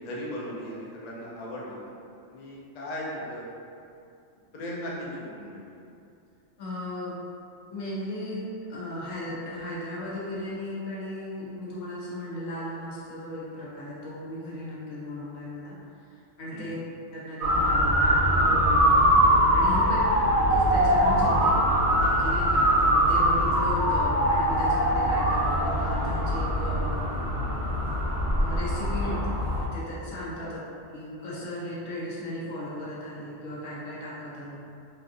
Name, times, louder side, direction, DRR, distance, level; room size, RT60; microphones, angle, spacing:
voice 1, 0.0-2.0 2.3-3.4 4.5-5.8 16.5-16.7 19.7-19.9 29.0-29.2 30.4-30.5, equal, 50° left, -5 dB, 0.4 m, -37 dB
voice 2, 6.6-7.2 7.7-15.8 16.4-16.8 17.1-18.9 19.5-20.0 20.5-21.6 21.9-27.0 28.4-29.2 29.6-30.6 30.9-34.6, left 1 dB, 85° left, -7 dB, 1.2 m, -36 dB
Motor vehicle (road) / Siren, 17.4-29.7, equal, 85° right, 0.3 m, -22 dB
3.3 x 2.5 x 2.5 m, 2.5 s
omnidirectional pair, 1.4 m